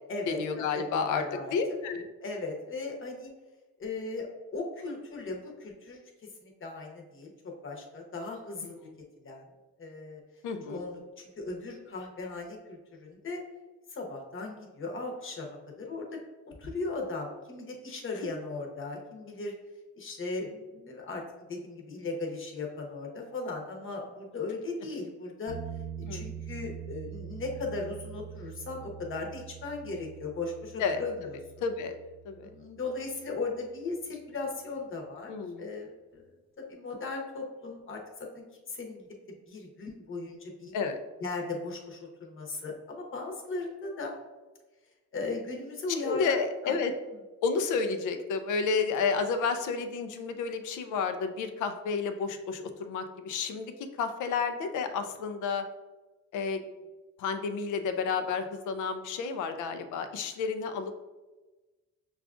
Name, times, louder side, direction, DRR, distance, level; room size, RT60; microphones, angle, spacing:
voice 1, 0.3-1.2 1.5-2.0 8.6-8.9 10.4-10.8 26.0-26.2 30.8-31.0 31.6-31.9 32.2-32.5 35.3-35.7 40.7-41.0 46.0-46.9 47.4-53.7 54.0-55.7 56.3-56.6 57.2-60.9, left 5 dB, 80° left, 8 dB, 0.5 m, -31 dB
voice 2, 1.1-1.5 2.2-3.3 3.8-6.0 6.4-7.3 7.6-8.7 9.2-9.4 9.8-10.2 10.7-13.4 13.9-16.2 16.5-19.5 20.0-21.2 21.5-25.6 26.1-31.4 32.4-36.2 36.6-39.1 39.5-40.7 41.2-44.1 45.1-46.8, left 3 dB, 40° left, 1 dB, 0.9 m, -37 dB
sound 1, 25.5-33.1 36.1-36.2, right 9 dB, 20° right, 0.9 m, -44 dB
5.9 x 2.4 x 2.4 m, 1.2 s
cardioid pair, 90°, 30 cm